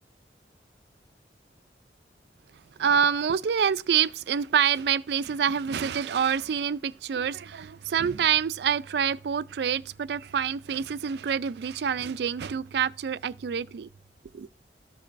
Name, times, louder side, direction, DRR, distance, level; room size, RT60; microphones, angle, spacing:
voice 1, 2.8-13.9 14.3-14.5, right 7 dB, 70° right, 0.3 m, -26 dB
13.5 x 5.2 x 2.5 m
head